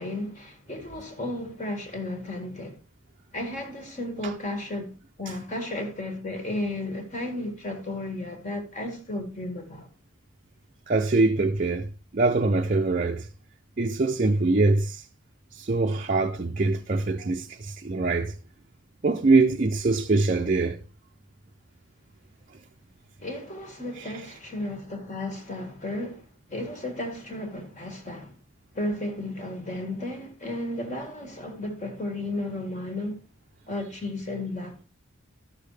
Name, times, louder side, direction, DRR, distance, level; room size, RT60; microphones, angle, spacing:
voice 1, 0.0-2.8 3.3-9.9 23.2-28.3 28.7-33.2 33.7-34.9, left 1 dB, 35° left, 1.9 m, -34 dB
voice 2, 10.9-13.3 13.8-15.0 15.5-18.3 19.0-20.8 24.0-24.1, right 3 dB, 40° right, 0.5 m, -23 dB
13.0 x 7.0 x 3.3 m
head